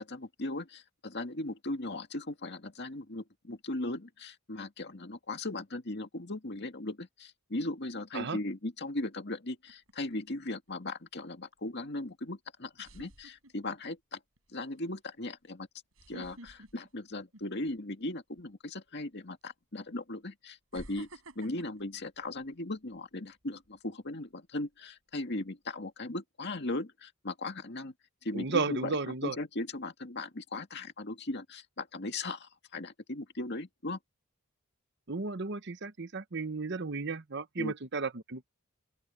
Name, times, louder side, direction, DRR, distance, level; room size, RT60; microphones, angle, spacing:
voice 1, 0.0-14.2 14.5-15.7 16.1-21.1 21.4-27.9 28.2-28.9 29.2-34.0 37.6-37.7, left 2 dB, 55° left, 2.1 m, -38 dB
sound 1, 9.7-10.1 12.0-12.1 12.8-13.9 14.4-14.6 15.9-17.8 18.1-18.4 19.4-19.5 20.7-23.0 23.4-23.7, right 1 dB, 75° right, 7.5 m, -51 dB
voice 2, 28.3-29.4 35.1-38.5, right 4 dB, 55° right, 1.0 m, -34 dB
open air
head